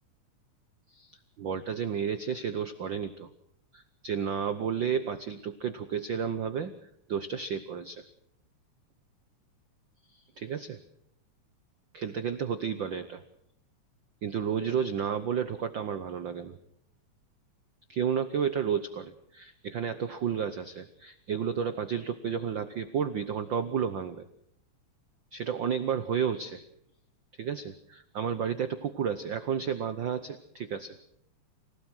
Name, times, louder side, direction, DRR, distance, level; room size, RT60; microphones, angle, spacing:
voice 1, 0.9-3.3 3.7-6.7 7.1-8.0 10.1-10.8 11.9-13.2 14.2-16.6 17.9-24.2 25.3-26.6 27.4-31.0, right 7 dB, 85° right, 11 dB, 1.0 m, -32 dB
27.5 x 17.0 x 6.2 m, 0.72 s
omnidirectional pair, 3.5 m